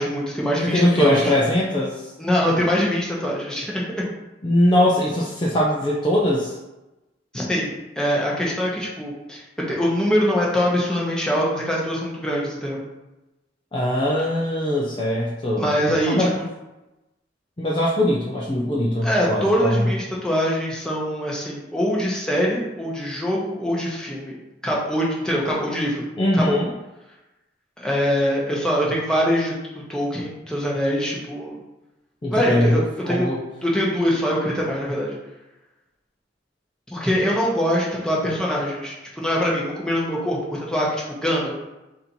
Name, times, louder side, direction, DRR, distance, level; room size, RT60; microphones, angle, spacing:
voice 1, 0.0-1.3 2.2-4.0 7.3-12.8 15.6-16.4 19.0-24.4 24.6-26.0 26.3-26.6 27.8-31.6 32.3-35.1 36.9-41.5, equal, 5° left, -4 dB, 0.9 m, -23 dB
voice 2, 0.6-2.1 4.4-6.5 13.7-15.7 16.1-16.3 17.6-19.9 26.2-26.7 32.2-32.8 33.1-33.4, left 1 dB, 25° left, -5 dB, 0.5 m, -21 dB
4.1 x 2.7 x 4.3 m, 1.0 s
head